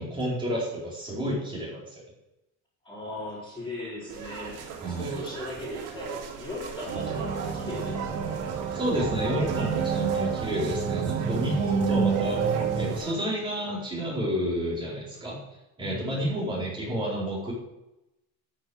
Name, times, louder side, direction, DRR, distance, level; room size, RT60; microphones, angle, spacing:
voice 1, 0.0-2.0 4.8-5.2 8.7-12.4 12.8-15.4 15.8-17.5, equal, 15° right, -6 dB, 4.4 m, -30 dB
voice 2, 2.8-8.5 15.8-16.4, left 2 dB, 15° left, -6 dB, 3.9 m, -39 dB
sound 1, 4.1-13.1, right 7 dB, 60° right, 3.3 m, -40 dB
sound 2, 6.9-13.0, right 6 dB, 40° right, 2.3 m, -28 dB
13.5 x 6.9 x 8.0 m, 0.93 s
cardioid pair, 170°, 35 cm